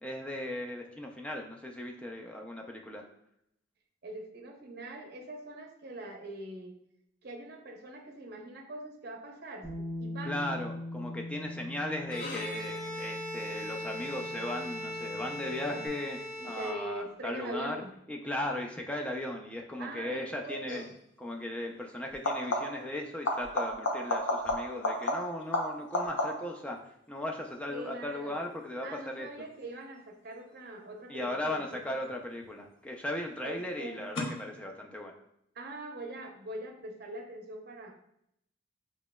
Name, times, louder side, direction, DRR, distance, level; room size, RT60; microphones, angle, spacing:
voice 1, 0.0-3.0 10.2-16.2 16.4-17.8 18.1-20.8 21.2-26.8 27.1-29.5 31.1-35.1, left 1 dB, 5° left, 1 dB, 0.4 m, -37 dB
voice 2, 4.0-6.7 7.2-10.6 15.7-15.8 16.4-17.9 19.8-20.9 27.7-28.4 28.8-31.8 33.4-34.0 35.5-37.9, right 1 dB, 50° right, 2 dB, 0.7 m, -42 dB
Bass guitar, 9.6-15.9, left 1 dB, 10° right, 0.9 m, -42 dB
Bowed string instrument, 12.0-17.3, left 1 dB, 45° left, 0.7 m, -39 dB
sound 1, 20.7-20.9 22.1-22.9 23.2-26.6 32.1-32.6 34.2-34.3, left 1 dB, 80° left, 0.7 m, -32 dB
6.2 x 3.0 x 2.2 m, 0.76 s
head